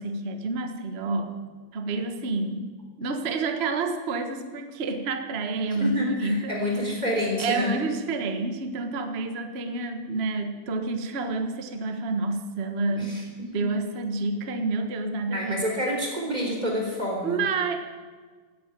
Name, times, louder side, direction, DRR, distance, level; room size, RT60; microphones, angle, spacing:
voice 1, 0.0-1.4 1.7-2.7 3.0-6.5 7.4-13.3 13.5-15.6 17.2-17.8, right 3 dB, 55° right, 6 dB, 0.6 m, -29 dB
voice 2, 5.8-7.8 13.0-13.2 13.6-13.7 15.3-17.4, equal, 15° right, 0 dB, 3.8 m, -28 dB
16.5 x 9.8 x 9.0 m, 1.5 s
omnidirectional pair, 3.3 m